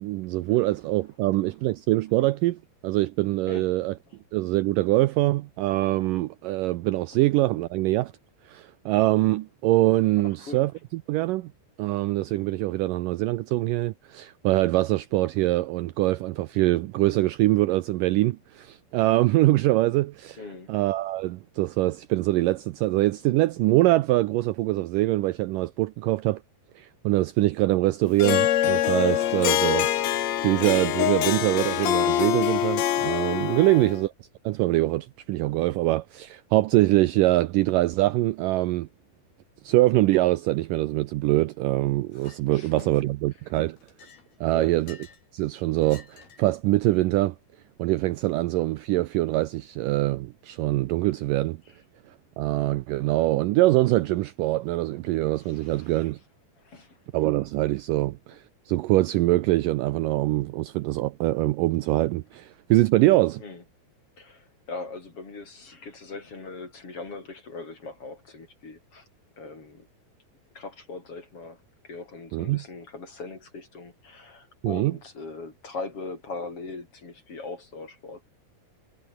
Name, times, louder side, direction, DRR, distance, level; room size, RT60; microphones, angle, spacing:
voice 1, 0.0-3.9 4.3-8.1 8.5-11.5 11.8-20.4 20.7-26.4 26.8-29.9 30.4-34.1 34.5-38.9 39.6-43.8 44.4-45.0 45.3-47.4 47.8-51.6 52.4-56.2 57.1-63.4 72.3-72.6 74.6-74.9, right 18 dB, 80° right, 2.0 m, -24 dB
voice 2, 10.2-10.6 20.4-20.7 33.5-33.8 42.5-42.7 44.5-44.7 55.4-56.1 56.6-57.0 63.4-63.6 64.2-69.1 69.4-69.9 70.5-78.2, left 3 dB, 35° left, 5.6 m, -40 dB
Harp, 28.2-34.0, left 12 dB, 60° left, 2.0 m, -24 dB
Chink clink, 42.1-42.4 42.8-43.3 43.8-45.3 45.8-46.5, left 6 dB, 90° left, 6.5 m, -50 dB
omnidirectional pair, 4.3 m